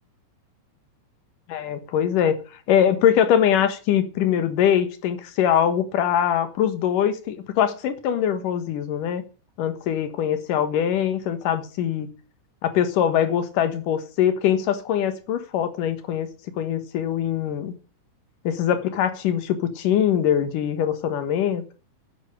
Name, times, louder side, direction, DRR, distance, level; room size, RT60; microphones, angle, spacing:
voice 1, 1.5-2.4 2.7-9.2 9.6-12.1 12.6-16.3 16.6-17.7 18.4-21.6, left 9 dB, 80° left, 3.0 m, -22 dB
11.0 x 8.9 x 8.1 m
omnidirectional pair, 3.8 m